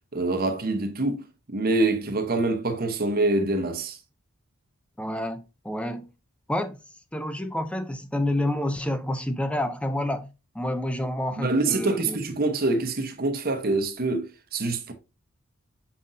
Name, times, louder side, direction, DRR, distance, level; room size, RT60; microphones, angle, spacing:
voice 1, 0.1-4.0 11.4-14.9, right 2 dB, 45° right, 0.9 m, -25 dB
voice 2, 5.0-6.1 6.5-6.8 7.1-10.3 10.5-12.2, left 1 dB, 5° left, 0.5 m, -29 dB
6.6 x 5.6 x 2.6 m
head